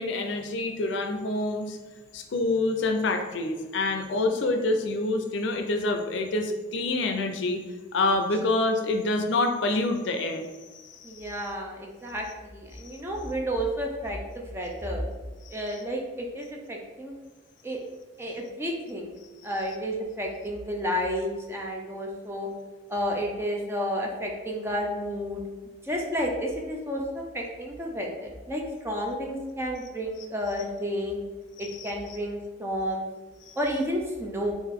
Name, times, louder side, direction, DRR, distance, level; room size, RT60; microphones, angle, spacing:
voice 1, 0.0-1.8 2.1-7.6 7.9-10.5 10.7-11.3 12.8-12.9 15.4-15.6 31.6-31.9 33.5-33.6, left 2 dB, 70° left, 5 dB, 0.4 m, -27 dB
voice 2, 11.0-15.0 15.5-17.1 17.6-17.8 18.2-19.1 19.4-22.5 22.9-25.4 25.8-31.2 31.6-33.1 33.6-34.5, equal, 15° right, 0 dB, 0.4 m, -31 dB
3.7 x 2.5 x 3.6 m, 1.3 s
head